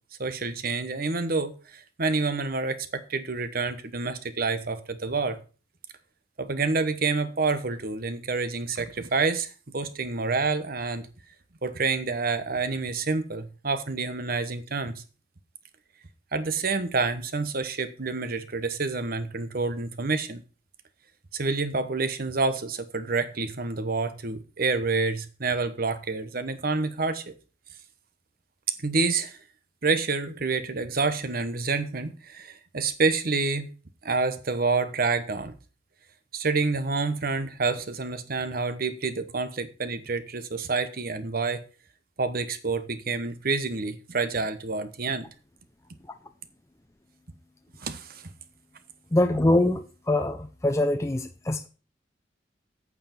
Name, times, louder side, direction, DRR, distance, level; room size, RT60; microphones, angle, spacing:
voice 1, 0.2-5.4 6.4-11.1 11.6-15.0 16.3-20.4 21.3-27.3 28.7-29.4 29.8-33.7 34.0-35.5 36.3-41.6 42.2-45.3 47.8-48.2, right 4 dB, 55° right, 1.1 m, -28 dB
voice 2, 49.1-51.7, left 1 dB, 15° left, 0.6 m, -24 dB
8.5 x 7.1 x 5.8 m
head